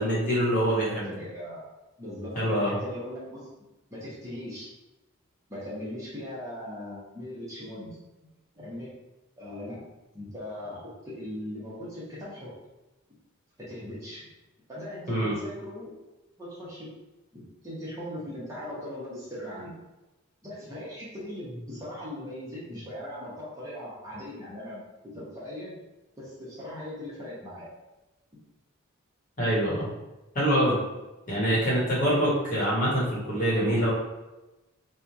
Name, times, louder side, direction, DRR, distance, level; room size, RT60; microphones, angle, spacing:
voice 1, 0.0-1.1 2.3-2.7 15.1-15.3 29.4-29.9 30.3-30.7 31.3-33.9, equal, 35° left, -6 dB, 1.2 m, -25 dB
voice 2, 0.6-1.6 2.0-3.5 3.9-4.7 5.5-8.0 8.6-8.9 9.4-9.8 10.1-12.5 13.6-14.2 14.7-15.9 16.4-16.9 17.3-19.7 20.4-24.8 25.1-25.7 26.2-27.7, left 1 dB, 15° right, -9 dB, 1.0 m, -39 dB
3.1 x 2.3 x 4.0 m, 1.0 s
head